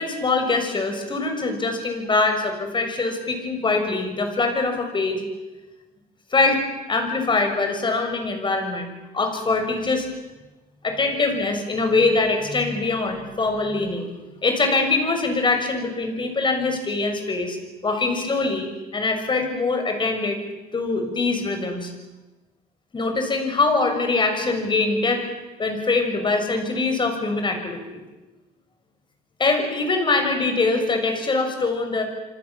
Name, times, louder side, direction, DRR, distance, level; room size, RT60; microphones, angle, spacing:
voice 1, 0.0-5.2 6.3-10.1 10.8-14.1 14.4-17.6 17.8-20.4 20.7-21.9 22.9-25.2 25.6-28.0 29.4-32.0, left 3 dB, 30° left, 5 dB, 6.7 m, -23 dB
27.5 x 26.0 x 7.4 m, 1.1 s
cardioid pair, 110°, 17 cm